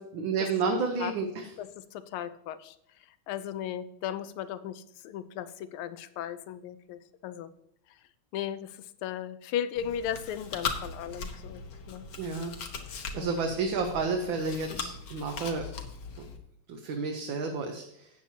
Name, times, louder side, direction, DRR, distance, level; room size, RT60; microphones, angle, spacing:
voice 1, 0.1-1.5 12.2-12.5 13.2-15.6 16.2-16.3 16.7-18.1, right 4 dB, 70° right, 3 dB, 1.6 m, -31 dB
voice 2, 1.6-2.7 3.3-7.5 8.3-11.6 11.9-12.0 13.1-13.4, left 10 dB, 90° left, 13 dB, 1.5 m, -36 dB
Chewing mastication, 9.8-16.4, left 5 dB, 60° left, 1.6 m, -39 dB
13.0 x 8.6 x 2.8 m, 0.75 s
omnidirectional pair, 2.3 m